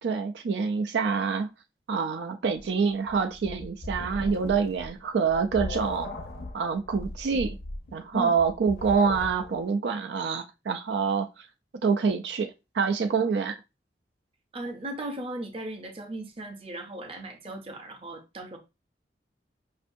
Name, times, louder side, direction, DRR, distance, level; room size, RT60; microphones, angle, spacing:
voice 1, 0.0-1.5 1.9-6.1 6.5-7.6 7.9-11.5 11.8-13.6, right 5 dB, 75° right, 0.4 m, -26 dB
sound 1, 2.5-9.6, left 1 dB, 55° left, 0.6 m, -38 dB
voice 2, 14.5-18.6, right 1 dB, 30° right, 0.6 m, -37 dB
5.2 x 2.5 x 2.6 m
head